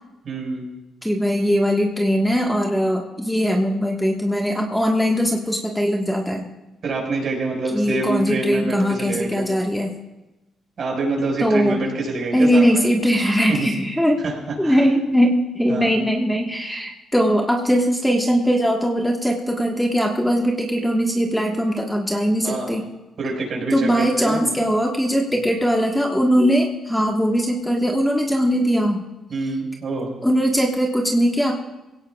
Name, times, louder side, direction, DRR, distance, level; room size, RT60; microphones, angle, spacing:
voice 1, 0.2-0.7 6.8-9.5 10.8-12.6 13.5-13.7 14.2-14.3 14.6-14.8 15.7-16.0 22.4-22.7 23.2-24.5 25.4-25.5 29.3-30.1, right 3 dB, 55° right, 0 dB, 5.2 m, -26 dB
voice 2, 1.0-6.4 7.7-9.9 11.4-11.9 12.3-14.2 14.6-22.8 23.7-29.1 30.2-31.5, equal, 5° left, 0 dB, 1.5 m, -20 dB
21.0 x 17.0 x 2.4 m, 1.0 s
cardioid pair, 90°, 0 cm